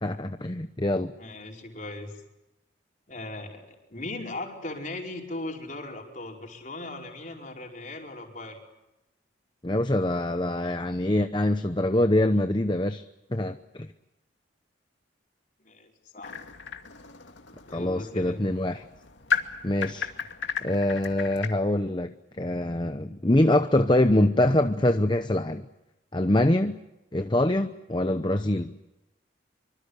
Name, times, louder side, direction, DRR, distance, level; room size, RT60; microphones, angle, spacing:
voice 1, 0.0-1.1 9.6-13.0 13.3-13.9 17.7-18.8 19.6-20.1 20.6-25.6 26.1-26.8 27.1-28.7, left 1 dB, 25° left, 8 dB, 0.9 m, -24 dB
voice 2, 1.2-2.1 3.1-8.6 15.6-16.3 17.6-18.4, left 2 dB, 40° left, 1 dB, 5.0 m, -38 dB
sound 1, 16.2-21.5, left 6 dB, 80° left, 2.4 m, -34 dB
25.5 x 25.0 x 8.2 m, 0.95 s
head